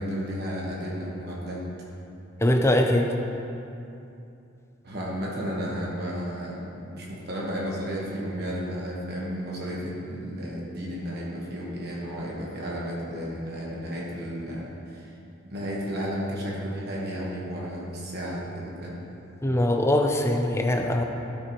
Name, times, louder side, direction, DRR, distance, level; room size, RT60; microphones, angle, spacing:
voice 1, 0.0-1.7 4.8-15.1 15.4-19.0, equal, 50° right, -4 dB, 1.2 m, -33 dB
voice 2, 2.4-3.1 19.4-21.0, left 1 dB, 15° left, 3 dB, 0.5 m, -22 dB
12.5 x 6.6 x 3.0 m, 2.7 s
head